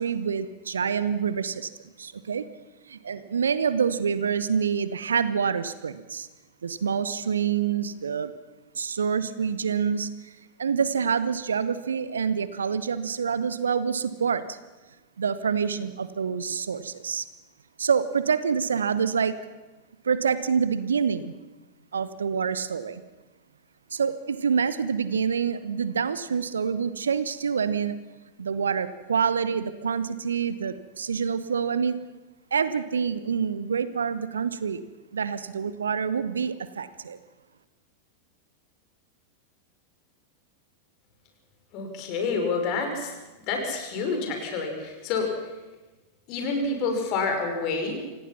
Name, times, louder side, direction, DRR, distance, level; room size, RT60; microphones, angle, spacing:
voice 1, 0.0-1.7 2.0-2.4 2.9-6.3 6.6-8.3 8.7-10.1 10.6-14.6 15.2-17.3 17.8-19.4 20.0-21.3 21.9-23.0 23.9-27.9 28.4-32.0 32.5-34.8 35.1-37.2, right 6 dB, 70° right, 14 dB, 1.1 m, -26 dB
voice 2, 41.7-43.2 43.5-45.3 46.3-48.0, left 4 dB, 40° left, 4 dB, 5.6 m, -28 dB
27.0 x 17.5 x 5.9 m, 1.2 s
figure-of-eight pair, 90°, 0 cm